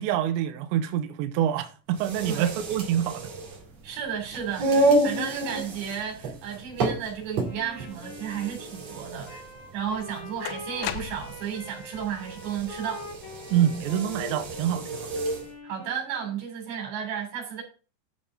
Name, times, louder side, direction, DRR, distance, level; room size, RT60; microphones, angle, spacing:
voice 1, 0.0-3.3 13.5-15.1, right 10 dB, 85° right, 2.6 m, -26 dB
sound 1, 1.9-15.5, right 2 dB, 40° right, 2.7 m, -30 dB
voice 2, 2.3-2.6 3.8-9.4 9.7-13.1 15.6-17.6, right 8 dB, 60° right, 5.2 m, -33 dB
Wind instrument woodwind instrument, 7.4-16.4, left 2 dB, 45° left, 2.8 m, -44 dB
sound 2, 9.5-9.6 10.4-11.6, left 11 dB, 85° left, 2.6 m, -35 dB
11.5 x 6.9 x 3.8 m
omnidirectional pair, 6.0 m